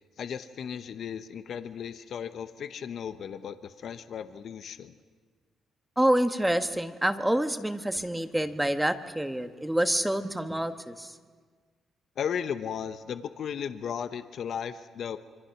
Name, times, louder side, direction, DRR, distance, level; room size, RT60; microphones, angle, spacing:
voice 1, 0.2-4.9 12.2-15.2, left 8 dB, 60° left, 10 dB, 0.9 m, -35 dB
voice 2, 6.0-11.1, right 1 dB, 5° right, 8 dB, 1.2 m, -27 dB
26.0 x 24.0 x 5.9 m, 1.5 s
cardioid pair, 90°, 0 cm